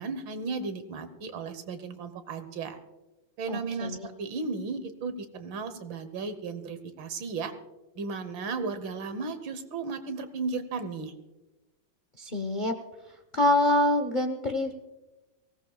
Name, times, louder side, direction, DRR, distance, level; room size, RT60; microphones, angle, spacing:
voice 1, 0.0-2.8 3.4-7.5 8.0-11.1, right 4 dB, 75° right, 10 dB, 1.7 m, -35 dB
voice 2, 3.5-4.1 12.2-12.7 13.3-14.7, left 1 dB, 40° left, 5 dB, 0.6 m, -25 dB
23.5 x 17.0 x 2.3 m, 1.1 s
omnidirectional pair, 2.2 m